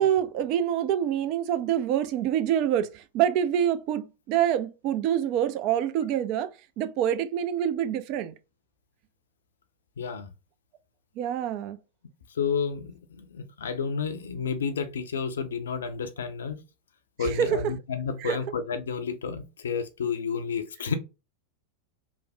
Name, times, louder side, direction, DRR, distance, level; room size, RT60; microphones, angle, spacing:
voice 1, 0.0-6.5 6.8-8.3 11.2-11.8 17.2-17.6 18.2-18.4, right 10 dB, 40° right, 0.4 m, -26 dB
voice 2, 10.0-10.3 12.3-16.6 17.2-20.9, left 6 dB, 65° left, 0.4 m, -31 dB
3.1 x 2.1 x 2.6 m
figure-of-eight pair, 90°, 0 cm